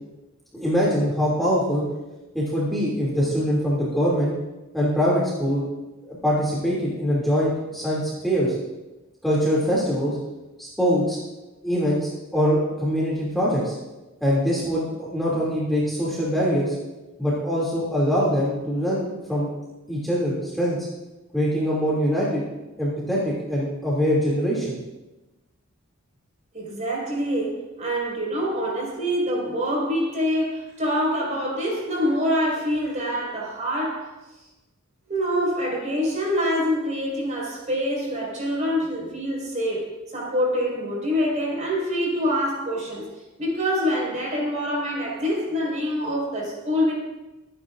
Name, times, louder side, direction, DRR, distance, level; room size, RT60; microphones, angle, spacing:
voice 1, 0.5-1.8 2.3-4.3 4.7-5.6 6.1-8.5 9.2-10.2 10.6-11.2 11.6-13.7 14.2-16.7 17.2-19.5 19.9-20.8 21.3-22.4 22.8-24.8, equal, ahead, -7 dB, 2.8 m, -23 dB
voice 2, 26.5-34.1 35.1-39.9 40.1-43.1 43.4-46.9, equal, 35° right, -4 dB, 5.5 m, -25 dB
24.5 x 10.0 x 2.6 m, 1.1 s
head